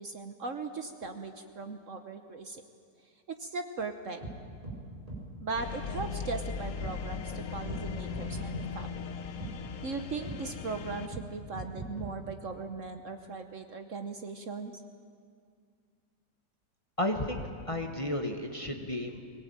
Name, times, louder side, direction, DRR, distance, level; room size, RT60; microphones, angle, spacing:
voice 1, 0.0-2.6 3.3-4.2 5.4-9.1 9.8-14.8, right 4 dB, 55° right, 7 dB, 1.3 m, -38 dB
sound 1, 4.2-4.3 4.6-4.8 5.1-5.2 5.9-6.1 6.8-6.9 7.7-7.8 8.1-8.7 9.4-9.5 10.2-10.4 11.1-11.2 11.5-12.1, right 2 dB, 20° right, 4.8 m, -39 dB
sound 2, 5.5-11.1, left 6 dB, 60° left, 1.4 m, -38 dB
voice 2, 17.0-19.2, left 1 dB, 20° left, 3 dB, 1.4 m, -33 dB
22.5 x 19.0 x 8.9 m, 2.1 s
omnidirectional pair, 1.8 m